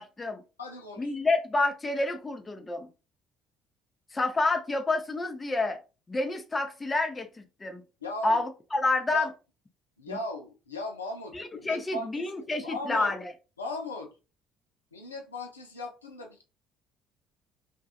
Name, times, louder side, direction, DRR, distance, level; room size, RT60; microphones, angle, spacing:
voice 1, 0.0-0.4 1.0-2.9 4.1-5.8 6.1-7.8 8.2-9.3 10.1-10.2 11.3-13.3, left 2 dB, 25° left, 0.6 m, -29 dB
voice 2, 0.6-1.1 8.0-8.4 9.1-9.3 10.0-13.1 13.6-14.1 14.9-16.4, left 2 dB, 85° left, 0.4 m, -38 dB
2.6 x 2.3 x 2.4 m
figure-of-eight pair, 55°, 0 cm